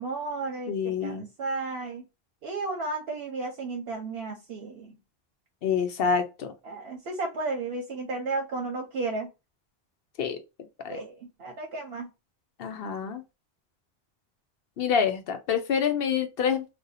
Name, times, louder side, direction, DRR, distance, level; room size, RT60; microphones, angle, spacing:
voice 1, 0.0-2.0 2.4-5.0 6.6-9.3 10.9-12.1, right 3 dB, 75° right, 0.9 m, -33 dB
voice 2, 0.7-1.3 5.6-6.5 10.2-10.4 10.8-11.0 12.6-13.2 14.8-16.6, left 7 dB, 70° left, 0.8 m, -27 dB
2.6 x 2.3 x 3.9 m
omnidirectional pair, 1.0 m